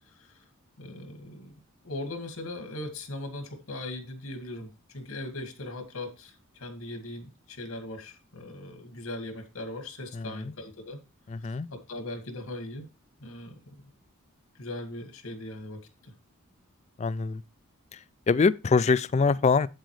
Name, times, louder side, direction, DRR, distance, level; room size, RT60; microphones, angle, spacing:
voice 1, 0.8-1.5 1.8-11.0 11.7-12.9 13.2-13.5 14.6-16.1, left 1 dB, 90° left, 2.0 m, -39 dB
voice 2, 10.1-10.5 11.3-11.7 17.0-17.4 18.3-19.7, left 4 dB, 30° left, 0.3 m, -24 dB
8.2 x 7.7 x 3.2 m
head